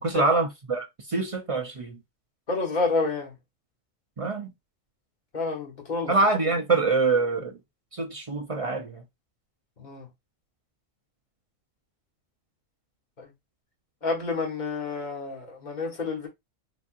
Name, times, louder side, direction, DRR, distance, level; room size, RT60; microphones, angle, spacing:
voice 1, 0.0-2.0 4.2-4.5 6.1-7.6 7.9-9.0, right 3 dB, 45° right, 0.4 m, -25 dB
voice 2, 2.5-3.3 5.3-6.1 9.8-10.1 13.2-13.3 14.0-16.3, left 3 dB, 35° left, 1.4 m, -29 dB
4.1 x 2.6 x 2.5 m
omnidirectional pair, 1.3 m